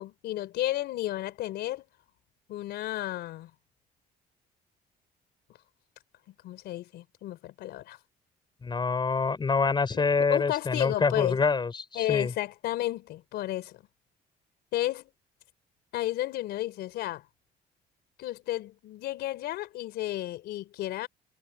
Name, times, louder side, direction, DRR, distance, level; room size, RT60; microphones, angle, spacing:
voice 1, 0.0-1.8 2.5-3.5 6.4-8.0 9.9-10.0 10.3-11.4 11.9-13.8 14.7-15.1 15.9-17.2 18.2-21.1, left 15 dB, 75° left, 4.5 m, -32 dB
voice 2, 8.6-12.3, left 4 dB, 25° left, 5.3 m, -26 dB
cardioid pair, 110°, 17 cm